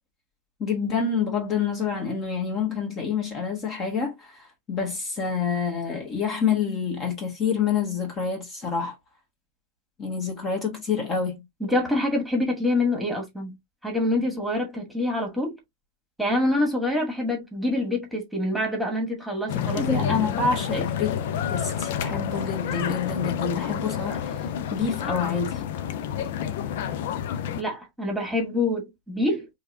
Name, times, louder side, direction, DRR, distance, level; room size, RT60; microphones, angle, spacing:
voice 1, 0.6-9.0 10.0-11.4 19.8-21.2 21.5-24.4 24.7-25.6, left 6 dB, 30° left, 1.4 m, -27 dB
voice 2, 11.6-13.5 13.8-15.6 16.2-20.3 27.6-29.5, left 1 dB, ahead, 1.7 m, -26 dB
sound 1, 19.5-27.6, left 8 dB, 55° left, 0.5 m, -29 dB
4.6 x 2.9 x 2.6 m
figure-of-eight pair, 90°, 0 cm